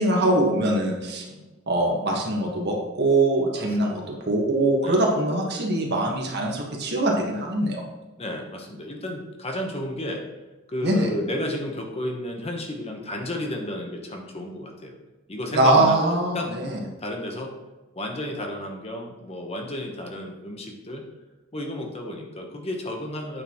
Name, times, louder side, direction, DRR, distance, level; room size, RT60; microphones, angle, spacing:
voice 1, 0.0-1.2 1.7-7.8 10.8-11.1 15.5-16.8, right 1 dB, 55° right, 0 dB, 1.5 m, -22 dB
voice 2, 1.0-1.5 3.5-4.2 4.8-5.1 8.2-10.2 10.7-14.9 15.3-16.5 17.0-17.5 18.0-21.0 21.5-23.4, left 1 dB, 30° left, 2 dB, 1.0 m, -32 dB
8.9 x 6.6 x 3.0 m, 1.2 s
head